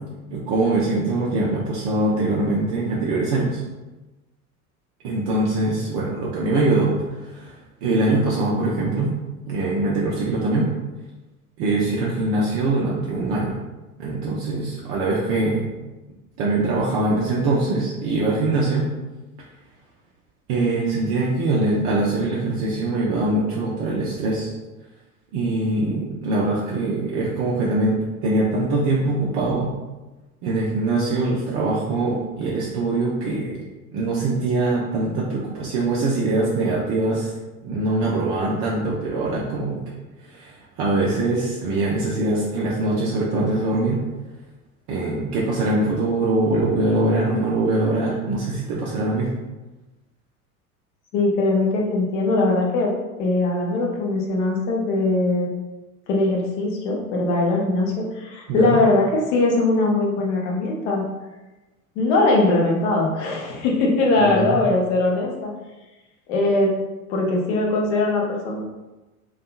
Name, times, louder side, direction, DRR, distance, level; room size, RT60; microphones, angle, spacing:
voice 1, 0.3-3.6 5.0-6.9 7.2-7.5 7.8-9.1 9.5-10.7 11.6-13.6 14.0-15.7 16.4-18.9 20.5-24.5 25.3-29.7 30.4-33.6 33.9-37.3 37.6-39.8 40.2-44.0 44.9-49.3 58.5-58.8 64.2-64.6, right 2 dB, 35° right, -4 dB, 0.4 m, -23 dB
voice 2, 51.1-52.9 53.2-55.5 56.1-61.0 62.0-65.5 66.3-66.7 67.1-68.6, left 2 dB, 50° left, -1 dB, 0.7 m, -21 dB
2.6 x 2.3 x 2.3 m, 1.1 s
figure-of-eight pair, 75°, 45 cm